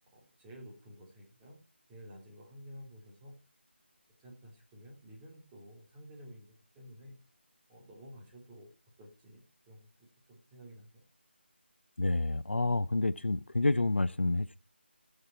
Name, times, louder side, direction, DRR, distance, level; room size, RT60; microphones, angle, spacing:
voice 1, 0.1-1.6 1.9-3.3 4.2-7.1 7.7-8.7 9.0-11.0, equal, 10° right, 3.0 m, -52 dB
voice 2, 12.0-14.6, left 2 dB, 75° left, 0.6 m, -29 dB
16.0 x 6.8 x 4.3 m
figure-of-eight pair, 160°, 6 cm